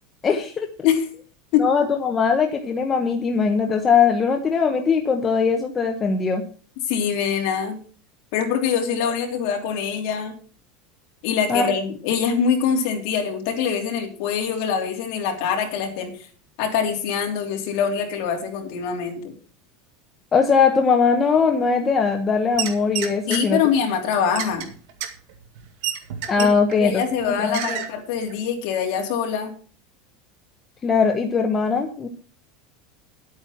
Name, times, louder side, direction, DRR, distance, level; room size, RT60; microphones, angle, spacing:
voice 1, 0.2-0.7 1.6-6.4 11.5-11.7 20.3-23.6 26.3-27.8 30.8-32.1, left 5 dB, 15° left, 3 dB, 0.9 m, -20 dB
voice 2, 6.9-7.8 8.3-10.3 11.2-16.2 16.6-19.2 23.3-24.7 26.4-26.5 26.8-29.5, left 7 dB, 50° left, 2 dB, 3.2 m, -24 dB
sound 1, 22.5-23.4 24.1-26.8 27.1-27.2 27.5-27.9 28.3-28.4, right 9 dB, 55° right, 2.1 m, -29 dB
11.0 x 8.7 x 5.9 m, 0.40 s
supercardioid pair, 175°, 0 cm